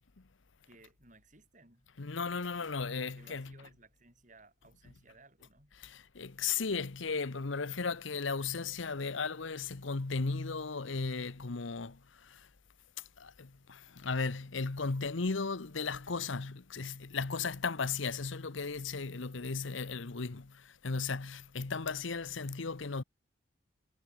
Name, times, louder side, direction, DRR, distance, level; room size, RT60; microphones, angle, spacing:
voice 1, 0.7-1.9 3.0-5.7, right 2 dB, 40° right, 7.3 m, -60 dB
voice 2, 2.0-3.5 5.8-12.5 13.2-23.0, left 4 dB, 75° left, 1.0 m, -36 dB
head